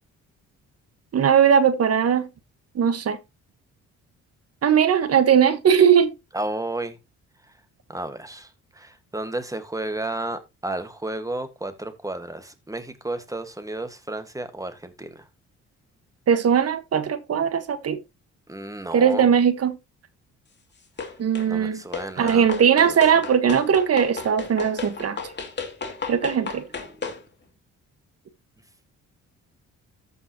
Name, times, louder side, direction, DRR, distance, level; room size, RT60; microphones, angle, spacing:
voice 1, 1.1-2.3 2.7-3.2 4.6-6.1 16.3-18.0 18.9-19.8 21.2-21.8 22.2-25.2 26.1-26.7, right 8 dB, 55° right, 1.5 m, -19 dB
voice 2, 6.3-7.0 7.9-8.5 8.7-15.2 18.5-19.3 21.5-22.5 22.9-23.0, right 2 dB, 10° right, 1.7 m, -32 dB
sound 1, 21.0-21.5 21.9-27.2, left 5 dB, 35° left, 2.7 m, -34 dB
14.5 x 5.5 x 3.0 m
cardioid pair, 90°, 30 cm